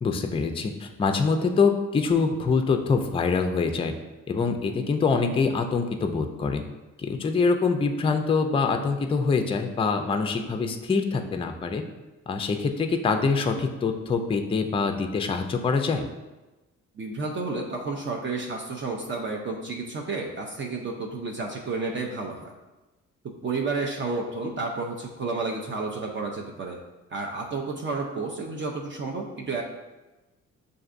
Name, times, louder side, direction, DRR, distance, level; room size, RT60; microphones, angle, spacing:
voice 1, 0.0-3.9 4.3-6.6 7.0-11.8 12.3-16.0, left 4 dB, 20° left, 6 dB, 0.3 m, -25 dB
voice 2, 17.0-22.5 23.4-26.8 27.1-29.6, right 3 dB, 40° right, 0 dB, 0.5 m, -31 dB
6.4 x 2.6 x 2.5 m, 1.1 s
cardioid pair, 90°, 30 cm